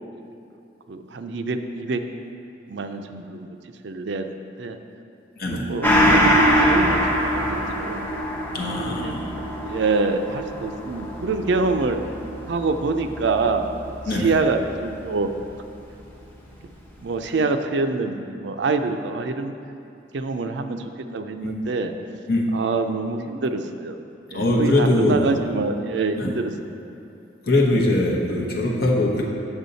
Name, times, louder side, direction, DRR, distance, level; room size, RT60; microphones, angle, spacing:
voice 1, 0.9-2.0 2.7-3.5 3.8-4.8 5.5-8.1 8.6-12.0 12.5-13.7 14.2-15.3 17.0-19.5 20.1-21.9 22.5-24.0 24.3-26.5, right 3 dB, 75° right, 7 dB, 0.4 m, -26 dB
Gong, 5.8-14.8 15.1-15.2, equal, 10° left, 1.0 m, -23 dB
voice 2, 8.5-9.2 14.1-14.3 21.4-21.5 22.3-22.5 24.3-25.3 26.1-26.3 27.4-29.3, left 1 dB, 55° left, -2 dB, 1.1 m, -21 dB
8.0 x 6.2 x 4.0 m, 2.7 s
head